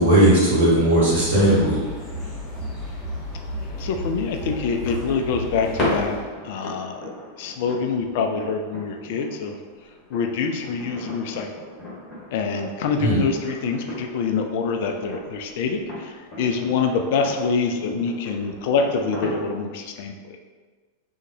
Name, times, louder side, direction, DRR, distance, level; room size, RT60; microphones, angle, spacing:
voice 1, 0.0-1.8 13.0-13.2, right 1 dB, 60° right, -7 dB, 1.4 m, -17 dB
sound 1, 1.1-6.2, equal, 15° left, 1.3 m, -33 dB
voice 2, 3.8-6.2 6.4-7.1 7.4-9.6 10.1-11.5 12.3-16.1 16.4-20.4, left 5 dB, 50° left, 4 dB, 0.3 m, -25 dB
sound 2, 4.6-19.7, left 1 dB, 30° left, 1.2 m, -36 dB
3.7 x 2.8 x 2.7 m, 1.4 s
figure-of-eight pair, 90°, 0 cm